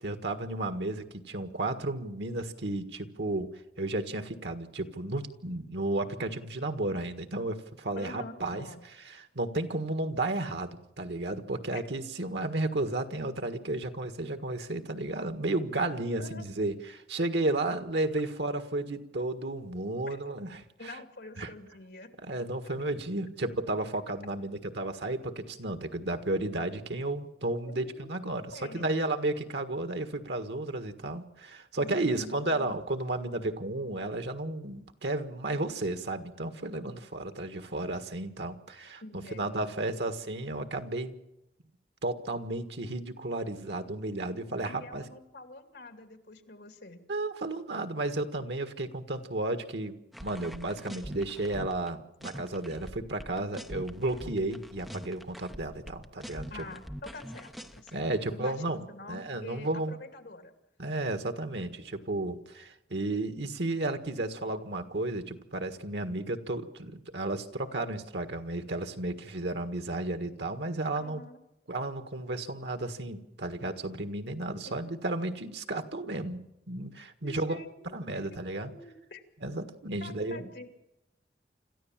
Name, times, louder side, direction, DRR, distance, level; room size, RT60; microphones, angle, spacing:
voice 1, 0.0-3.5 3.8-8.6 9.0-21.0 21.4-21.5 22.2-39.0 39.3-41.2 42.0-45.0 47.1-49.9 50.2-56.5 57.9-60.0 60.8-71.2 71.7-77.6 77.9-78.7 79.4-80.5, right 2 dB, 85° right, 8 dB, 1.7 m, -33 dB
voice 2, 8.0-8.8 11.7-11.8 16.2-16.5 20.1-20.2 20.8-22.1 27.7-28.1 28.5-29.1 31.8-32.8 39.0-40.0 43.7-43.8 44.6-47.0 56.5-60.5 71.0-71.4 74.6-75.1 77.2-79.2 80.0-80.7, left 2 dB, 75° left, 7 dB, 2.6 m, -47 dB
sound 1, 50.1-51.9 52.2-58.0, equal, ahead, 0.7 m, -44 dB
26.5 x 14.0 x 7.4 m, 0.88 s
head